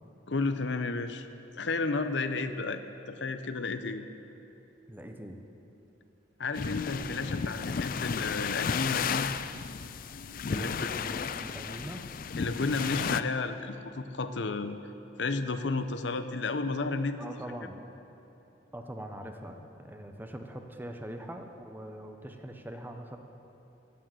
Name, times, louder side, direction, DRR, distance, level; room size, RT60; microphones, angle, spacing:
voice 1, 0.3-1.3 1.6-4.1 6.4-9.3 10.5-10.9 12.4-14.8 15.2-17.2, left 3 dB, 70° left, 9 dB, 0.7 m, -32 dB
voice 2, 4.9-5.4 10.5-12.1 17.2-17.8 18.7-23.2, right 1 dB, 10° right, 4 dB, 0.9 m, -42 dB
sound 1, 6.5-13.2, left 6 dB, 50° left, 0.4 m, -33 dB
15.0 x 9.2 x 7.7 m, 2.9 s
head